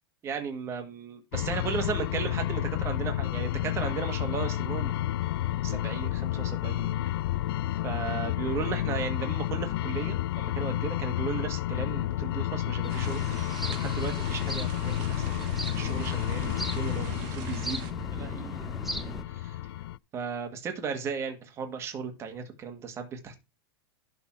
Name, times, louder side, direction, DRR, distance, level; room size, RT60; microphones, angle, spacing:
voice 1, 0.2-5.0 5.6-7.0 7.8-13.2 13.7-18.7 19.3-19.6 20.1-23.3, right 6 dB, 20° right, 5 dB, 1.8 m, -36 dB
sound 1, 1.3-20.0, left 13 dB, 75° left, 0.4 m, -31 dB
sound 2, 12.8-19.2, right 1 dB, ahead, 0.7 m, -38 dB
sound 3, 12.9-17.9, right 10 dB, 45° right, 1.6 m, -45 dB
11.5 x 4.2 x 6.0 m, 0.26 s
supercardioid pair, 165°, 13 cm